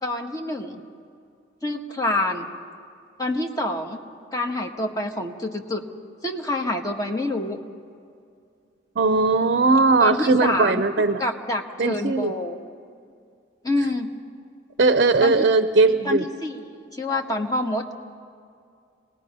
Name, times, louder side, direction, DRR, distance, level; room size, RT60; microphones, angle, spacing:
voice 1, 0.0-0.8 1.6-2.5 3.2-4.0 4.3-5.8 6.2-7.6 10.0-10.8 11.2-12.6 13.6-14.1 15.2-15.4 16.0-17.8, left 2 dB, 20° left, 3 dB, 1.3 m, -27 dB
voice 2, 9.0-11.2 11.8-12.3 14.8-16.2, right 3 dB, 55° right, 10 dB, 0.6 m, -19 dB
26.0 x 19.0 x 5.4 m, 2.4 s
head